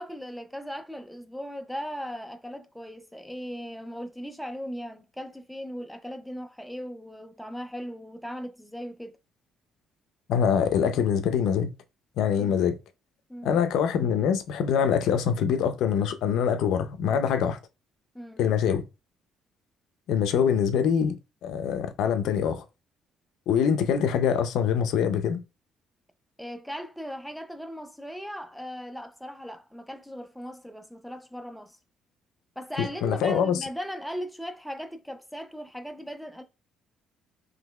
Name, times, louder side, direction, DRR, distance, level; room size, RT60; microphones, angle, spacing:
voice 1, 0.0-9.1 12.4-12.6 13.3-13.6 18.1-18.4 26.4-31.8 32.6-36.4, equal, ahead, 0.4 m, -38 dB
voice 2, 10.3-11.7 12.2-12.8 13.4-17.6 18.4-18.8 20.1-21.2 21.4-22.6 23.5-25.4 32.8-33.7, left 7 dB, 80° left, 0.5 m, -24 dB
3.8 x 3.0 x 2.2 m
cardioid pair, 120°, 0 cm